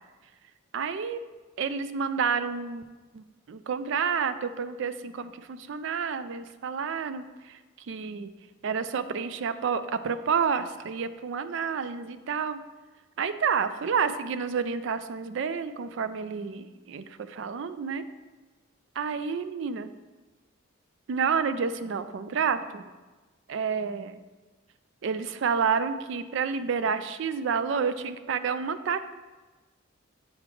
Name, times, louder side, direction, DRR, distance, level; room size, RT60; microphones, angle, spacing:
voice 1, 0.7-1.2 1.6-2.8 3.1-7.6 7.9-8.3 8.6-12.6 13.2-18.0 19.0-19.9 21.1-22.8 23.5-24.1 25.0-29.0, right 6 dB, 60° right, 12 dB, 0.3 m, -29 dB
7.7 x 3.4 x 4.7 m, 1.2 s
head